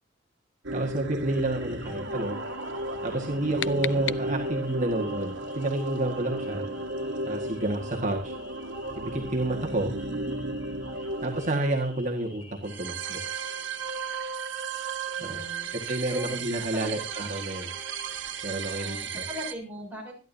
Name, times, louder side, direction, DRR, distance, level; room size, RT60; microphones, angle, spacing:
sound 1, 0.6-19.5, right 3 dB, 75° right, 1.7 m, -34 dB
voice 1, 0.7-2.4 3.0-6.6 7.3-8.4 9.0-9.9 10.9-13.2 15.2-15.4 15.7-17.7 18.4-19.2, right 2 dB, 40° right, 0 dB, 1.7 m, -30 dB
sound 2, 1.3-19.1, left 2 dB, 30° left, 4.0 m, -53 dB
voice 2, 1.7-2.2 3.5-4.0 15.2-15.7 16.1-16.3 16.7-16.9 18.7-20.1, equal, 10° right, -2 dB, 6.7 m, -40 dB
sound 3, 3.1-4.8, left 10 dB, 75° left, 0.6 m, -37 dB
25.5 x 11.0 x 2.8 m, 0.33 s
head